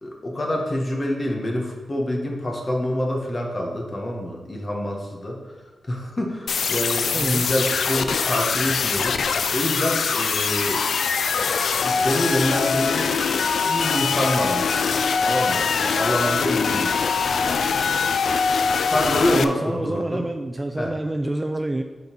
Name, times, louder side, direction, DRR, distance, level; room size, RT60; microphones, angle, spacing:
voice 1, 0.0-5.4 5.9-10.8 11.8-13.1 13.7-17.1 18.9-20.3 20.8-20.9, left 1 dB, 25° left, 0 dB, 1.3 m, -26 dB
sound 1, 6.5-19.4, left 5 dB, 75° left, 0.4 m, -23 dB
voice 2, 7.1-7.4 19.3-21.8, right 1 dB, 15° right, 5 dB, 0.3 m, -27 dB
7.0 x 4.0 x 5.3 m, 1.2 s
wide cardioid pair, 130°, 0 cm